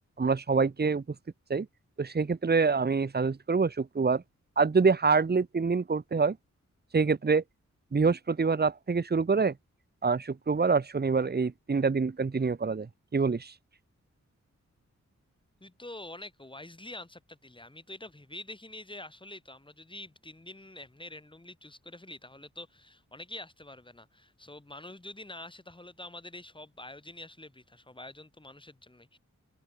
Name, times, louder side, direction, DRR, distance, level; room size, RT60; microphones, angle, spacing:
voice 1, 0.2-1.0 1.5-1.7 2.0-4.2 4.6-6.4 6.9-7.4 7.9-9.5 10.0-13.5, right 4 dB, 35° right, 1.3 m, -26 dB
voice 2, 15.6-29.2, left 2 dB, 15° left, 5.9 m, -46 dB
wide cardioid pair, 120°, 29 cm